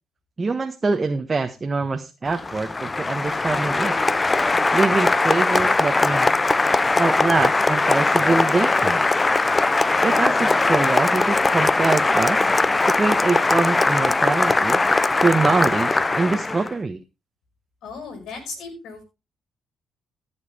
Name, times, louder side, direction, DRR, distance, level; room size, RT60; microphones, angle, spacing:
voice 1, 0.4-3.9 4.7-6.3 7.0-9.2 10.0-12.4 12.8-14.8 15.2-17.0, right 3 dB, 30° right, 5 dB, 1.2 m, -24 dB
Applause, 2.3-16.7, left 3 dB, 25° left, 0.7 m, -20 dB
voice 2, 17.8-19.0, left 4 dB, 75° left, 5 dB, 5.3 m, -36 dB
16.0 x 7.3 x 3.5 m, 0.27 s
supercardioid pair, 60°, 0 cm